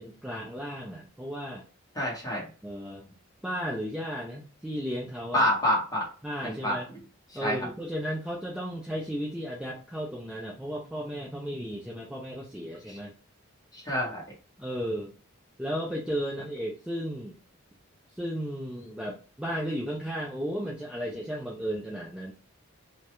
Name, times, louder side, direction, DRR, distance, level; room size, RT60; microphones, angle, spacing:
voice 1, 0.0-1.6 2.6-3.1 3.4-5.5 6.2-6.8 7.3-13.1 14.6-15.1 15.6-17.4 18.1-22.3, equal, 5° right, -3 dB, 0.3 m, -34 dB
voice 2, 1.9-2.4 5.3-6.1 6.4-6.8 7.4-7.7 12.9-13.0 13.7-14.2, equal, 15° left, -4 dB, 1.0 m, -27 dB
2.4 x 2.1 x 2.8 m, 0.38 s
head